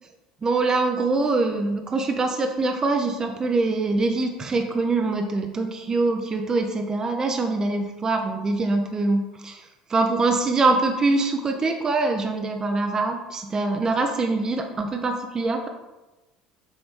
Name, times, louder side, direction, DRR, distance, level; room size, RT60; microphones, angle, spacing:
voice 1, 0.4-15.7, right 3 dB, 30° right, 3 dB, 0.7 m, -24 dB
7.1 x 3.0 x 5.3 m, 1.1 s
hypercardioid pair, 65°, 2 cm